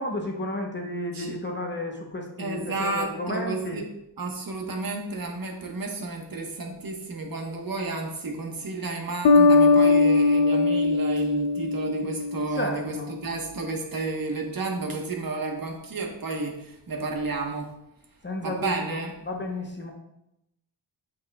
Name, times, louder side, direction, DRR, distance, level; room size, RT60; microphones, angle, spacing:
voice 1, 0.0-3.8 12.5-13.1 18.2-19.9, left 1 dB, 25° left, 1 dB, 1.0 m, -32 dB
voice 2, 2.4-3.9 4.2-17.7 18.4-19.1, right 3 dB, 50° right, 2 dB, 1.3 m, -32 dB
Bass guitar, 9.2-12.8, left 3 dB, 70° left, 0.7 m, -20 dB
8.3 x 6.5 x 2.3 m, 0.82 s
wide cardioid pair, 130°, 43 cm